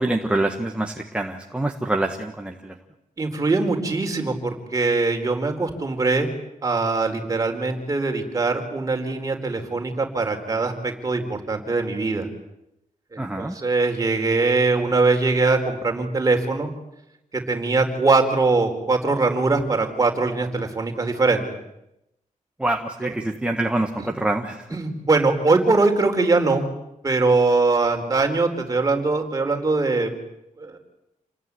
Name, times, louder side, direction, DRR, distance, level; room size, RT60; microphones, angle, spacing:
voice 1, 0.0-2.8 13.2-13.5 22.6-24.8, right 2 dB, 10° right, 3 dB, 1.5 m, -25 dB
voice 2, 3.2-6.3 6.6-12.3 13.1-16.7 17.3-21.4 24.7-26.6 27.0-30.1 30.6-30.8, right 3 dB, 25° right, 4 dB, 4.3 m, -22 dB
29.0 x 20.5 x 9.8 m, 0.87 s
wide cardioid pair, 160°, 13 cm